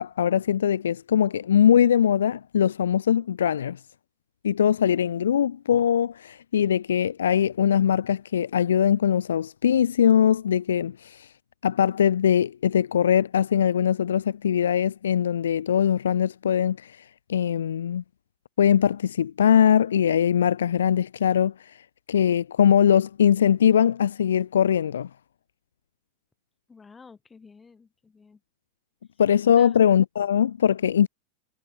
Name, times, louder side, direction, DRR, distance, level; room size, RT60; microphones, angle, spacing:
voice 1, 0.0-3.8 4.4-11.3 11.6-16.9 17.3-18.0 18.6-21.5 22.1-25.1 29.2-31.1, left 9 dB, 65° left, 0.5 m, -21 dB
voice 2, 26.7-28.4 29.5-29.8, left 5 dB, 15° left, 8.0 m, -50 dB
figure-of-eight pair, 90°, 0 cm